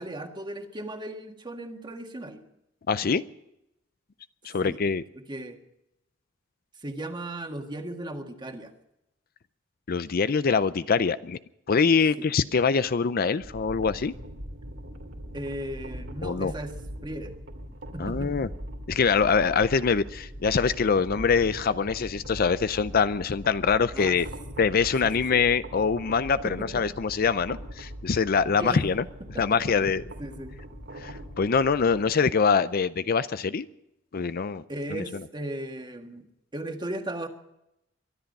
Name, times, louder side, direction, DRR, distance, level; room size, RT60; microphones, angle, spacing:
voice 1, 0.0-2.4 3.0-3.1 4.6-4.8 5.2-5.6 6.8-8.7 12.2-12.3 15.3-16.7 17.0-17.4 17.9-18.3 23.9-24.2 25.0-25.4 26.4-26.8 28.6-28.9 29.3-29.7 30.2-30.6 34.7-36.3 36.5-37.3, right 1 dB, 25° right, 5 dB, 1.7 m, -36 dB
voice 2, 2.9-3.2 4.4-5.0 9.9-11.4 11.7-14.1 16.2-16.5 18.0-18.5 18.9-24.3 24.6-29.0 29.4-30.0 31.0-33.7 34.1-34.6 34.9-35.0, left 5 dB, 50° left, 14 dB, 0.5 m, -24 dB
sound 1, 13.4-32.1, equal, 75° right, 2.5 m, -41 dB
23.5 x 11.5 x 5.4 m, 0.85 s
head